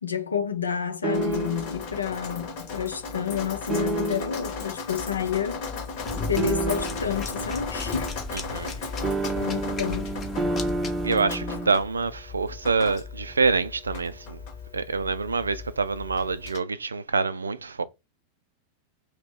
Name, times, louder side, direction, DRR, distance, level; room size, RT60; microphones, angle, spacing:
voice 1, 0.0-5.6 6.3-8.1 8.5-9.0 9.2-10.1, left 8 dB, 75° left, 0.5 m, -30 dB
sound 1, 1.0-1.8 3.7-4.5 6.4-7.2 9.0-11.7, right 2 dB, 20° right, 0.5 m, -29 dB
Drip, 1.1-16.6, left 4 dB, 50° left, 1.0 m, -37 dB
sound 2, 6.0-11.1, left 3 dB, 25° left, 0.8 m, -35 dB
voice 2, 8.3-8.7 11.0-14.4 14.7-17.8, right 4 dB, 75° right, 0.3 m, -26 dB
2.9 x 2.8 x 3.5 m
figure-of-eight pair, 90°, 0 cm